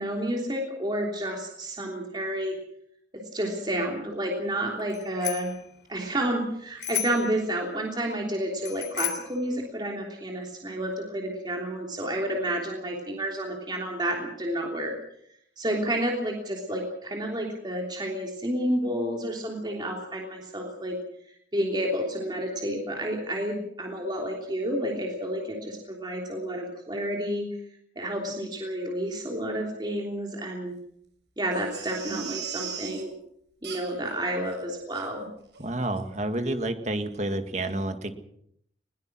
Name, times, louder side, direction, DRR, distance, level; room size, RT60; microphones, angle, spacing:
voice 1, 0.0-2.6 3.1-5.5 5.9-14.9 15.6-21.0 21.5-27.5 27.9-30.7 31.4-33.1 33.6-35.3, right 1 dB, 25° right, 0 dB, 3.2 m, -30 dB
Bicycle bell, 4.9-5.6 6.8-7.4 8.6-9.4, left 11 dB, 75° left, 3.3 m, -32 dB
Crying sobbing, 31.5-33.0 33.6-34.1 34.5-34.6 34.9-35.1 35.5-35.7 35.9-36.0, right 8 dB, 75° right, 7.0 m, -38 dB
voice 2, 35.6-38.1, right 1 dB, 40° right, 7 dB, 2.0 m, -29 dB
21.0 x 20.0 x 6.2 m, 0.71 s
head